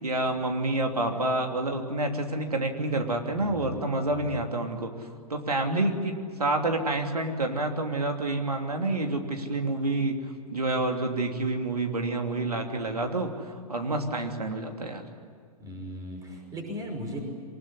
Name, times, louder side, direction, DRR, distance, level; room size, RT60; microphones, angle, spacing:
voice 1, 0.0-15.1, right 2 dB, 75° right, 3 dB, 3.1 m, -28 dB
voice 2, 3.3-4.3 15.6-17.2, equal, 20° right, 3 dB, 5.8 m, -38 dB
24.5 x 20.5 x 9.9 m, 2.1 s
figure-of-eight pair, 110°, 20 cm